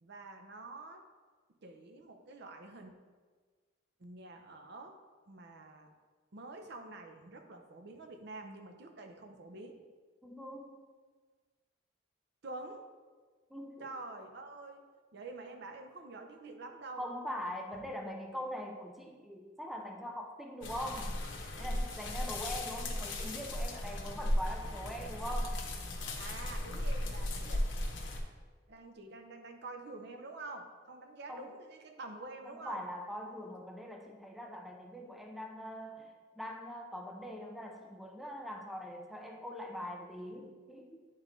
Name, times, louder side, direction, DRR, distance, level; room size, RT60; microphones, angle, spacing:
voice 1, 0.0-1.0 1.6-2.9 4.0-5.0 5.3-5.9 6.3-9.8 12.4-12.8 13.8-14.8 15.1-17.0 26.2-27.6 28.7-32.8, right 2 dB, 60° right, 5 dB, 0.7 m, -47 dB
voice 2, 10.2-10.9 13.5-13.9 17.0-21.2 21.6-25.6 31.3-31.5 32.5-41.0, equal, ahead, 1 dB, 0.4 m, -42 dB
sound 1, 20.6-28.2, left 1 dB, 75° left, 0.9 m, -36 dB
9.5 x 3.8 x 3.1 m, 1.5 s
head